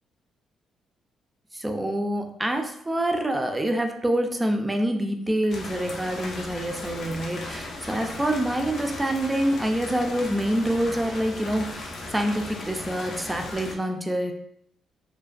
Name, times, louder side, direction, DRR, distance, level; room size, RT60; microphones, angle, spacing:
voice 1, 1.5-14.3, right 1 dB, 15° right, 5 dB, 0.3 m, -26 dB
sound 1, 5.5-13.7, left 2 dB, 60° left, 0.4 m, -37 dB
2.3 x 2.1 x 2.4 m, 0.72 s
cardioid pair, 90°, 0 cm